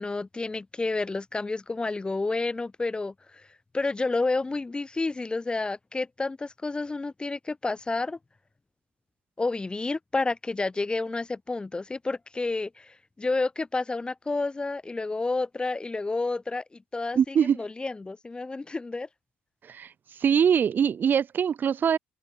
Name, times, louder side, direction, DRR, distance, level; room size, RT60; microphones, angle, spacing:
voice 1, 0.0-3.1 3.7-8.2 9.4-16.6 16.9-19.1, left 3 dB, 20° left, 0.8 m, -30 dB
voice 2, 17.1-17.6 19.7-19.9 20.2-22.0, right 7 dB, 50° right, 0.7 m, -23 dB
open air
hypercardioid pair, 55°, 4 cm